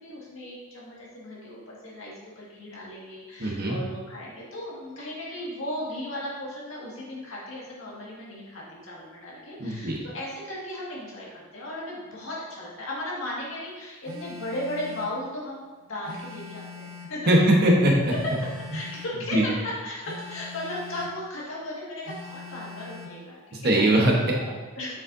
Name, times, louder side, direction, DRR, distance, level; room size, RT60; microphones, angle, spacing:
voice 1, 0.0-17.3 18.7-23.8 24.3-25.0, left 1 dB, 65° left, -5 dB, 1.9 m, -36 dB
voice 2, 3.4-3.8 9.6-10.0 17.3-17.9 19.3-19.5 23.5-24.3, right 1 dB, 45° right, -1 dB, 1.1 m, -20 dB
Telephone, 14.0-15.2 16.0-17.2 18.0-19.2 20.0-21.2 22.0-23.2, left 3 dB, 70° right, 0.9 m, -42 dB
7.1 x 6.5 x 2.7 m, 1.3 s
head